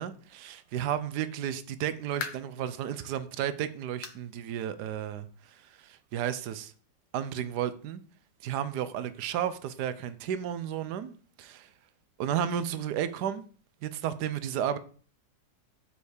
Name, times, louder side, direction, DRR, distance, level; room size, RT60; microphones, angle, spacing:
voice 1, 0.0-6.7 7.1-8.0 8.4-11.7 12.2-13.4 13.8-14.8, right 9 dB, 70° right, 1.3 m, -33 dB
sound 1, 2.2-2.6 3.1-3.2 4.0-4.3 4.6-4.7 5.2-5.3 6.4-6.5, left 7 dB, 90° left, 1.7 m, -40 dB
8.2 x 5.5 x 6.5 m
omnidirectional pair, 1.9 m